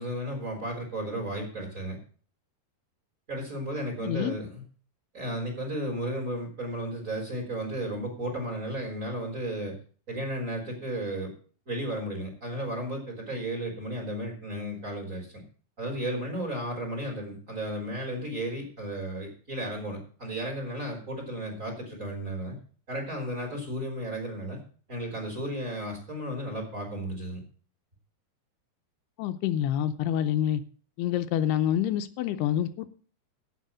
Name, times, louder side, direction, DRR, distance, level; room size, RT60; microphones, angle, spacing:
voice 1, 0.0-2.0 3.3-4.6 5.1-9.7 10.1-11.3 11.7-15.4 15.8-22.6 22.9-24.6 24.9-27.4, right 1 dB, 20° right, 1 dB, 3.6 m, -34 dB
voice 2, 4.0-4.4 29.2-30.6 31.0-32.9, left 10 dB, 85° left, 9 dB, 2.7 m, -27 dB
8.6 x 8.3 x 7.5 m, 0.40 s
omnidirectional pair, 4.6 m